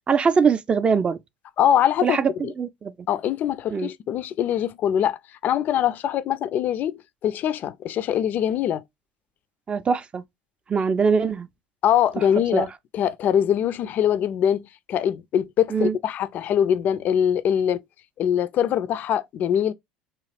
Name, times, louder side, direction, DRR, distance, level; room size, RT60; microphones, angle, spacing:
voice 1, 0.1-1.2 2.0-2.3 2.6-2.9 3.7-3.9 9.7-10.2 10.7-11.5 12.5-12.7 15.7-16.0, right 5 dB, 25° right, 0.4 m, -22 dB
voice 2, 1.6-2.2 2.4-2.5 3.1-8.8 11.8-17.8 18.2-19.7, left 9 dB, 45° left, 0.3 m, -23 dB
3.0 x 2.3 x 3.2 m
figure-of-eight pair, 70°, 4 cm